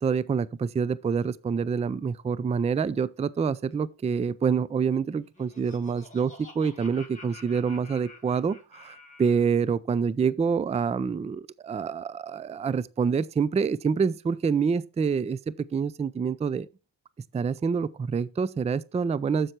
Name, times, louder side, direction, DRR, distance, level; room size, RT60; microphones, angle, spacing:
voice 1, 0.0-16.7 17.3-19.5, right 6 dB, 15° right, 0.4 m, -27 dB
Laughter, 5.1-9.5, left 3 dB, 15° left, 2.5 m, -50 dB
7.6 x 6.8 x 4.4 m
cardioid pair, 70°, 48 cm